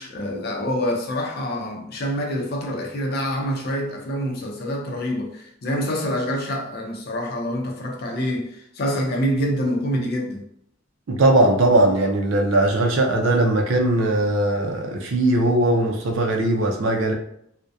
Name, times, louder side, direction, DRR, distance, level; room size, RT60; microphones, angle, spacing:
voice 1, 0.0-10.4, equal, 55° left, 0.5 m, -26 dB
voice 2, 11.1-17.1, right 1 dB, 75° right, 0.4 m, -19 dB
2.6 x 2.1 x 2.3 m
head